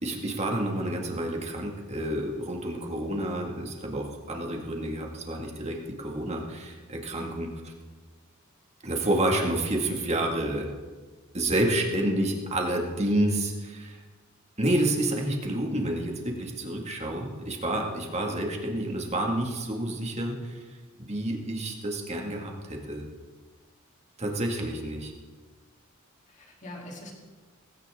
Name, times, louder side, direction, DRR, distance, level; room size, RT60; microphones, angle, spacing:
voice 1, 0.0-7.5 8.8-10.7 11.3-14.0 14.6-20.6 21.0-23.0 24.2-25.1, right 1 dB, 30° right, 1 dB, 2.2 m, -29 dB
voice 2, 7.2-7.5 26.3-27.1, left 1 dB, 35° left, -2 dB, 3.5 m, -43 dB
18.0 x 16.5 x 3.8 m, 1.4 s
head